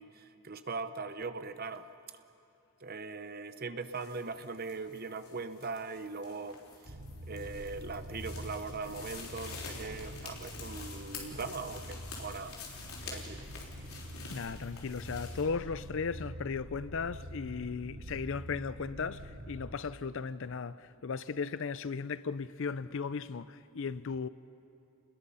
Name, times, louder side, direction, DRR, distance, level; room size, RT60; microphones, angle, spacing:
voice 1, 0.0-1.9 2.8-7.0 7.3-12.6 13.0-13.5, right 4 dB, 45° right, 0.8 m, -40 dB
sound 1, 3.8-15.4, left 4 dB, 75° left, 3.7 m, -48 dB
sound 2, 6.9-19.7, equal, 90° right, 5.0 m, -45 dB
voice 2, 14.3-24.3, left 5 dB, 60° left, 0.5 m, -36 dB
29.5 x 20.5 x 5.6 m
head